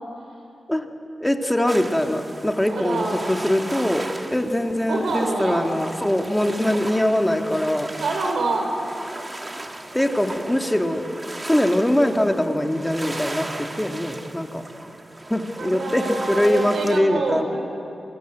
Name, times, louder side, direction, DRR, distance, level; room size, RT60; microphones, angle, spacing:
voice 1, 1.2-7.9 9.9-11.0 11.4-14.6 15.3-17.5, left 1 dB, 10° left, 4 dB, 2.0 m, -22 dB
sound 1, 1.7-17.0, right 2 dB, 25° right, 2.0 m, -36 dB
voice 2, 2.6-3.3 4.9-5.7 6.6-6.9 8.0-8.7 15.6-17.6, right 3 dB, 80° right, 3 dB, 5.4 m, -26 dB
29.0 x 24.5 x 8.1 m, 2.7 s
wide cardioid pair, 100°, 0 cm